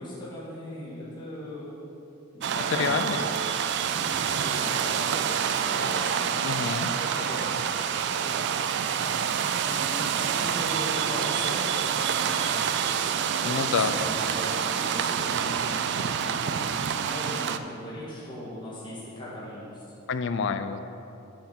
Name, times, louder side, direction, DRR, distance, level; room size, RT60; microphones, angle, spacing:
voice 1, 0.0-1.7 2.3-3.0 3.9-6.3 6.9-8.4 9.6-13.1 13.5-16.6 16.9-19.8, equal, 20° left, -9 dB, 1.7 m, -39 dB
sound 1, 2.4-17.6, right 8 dB, 55° right, 0.3 m, -27 dB
voice 2, 2.8-3.2 6.4-6.9 13.4-13.9 20.1-20.8, left 5 dB, 55° left, 10 dB, 0.4 m, -27 dB
7.4 x 4.7 x 7.1 m, 3.0 s
head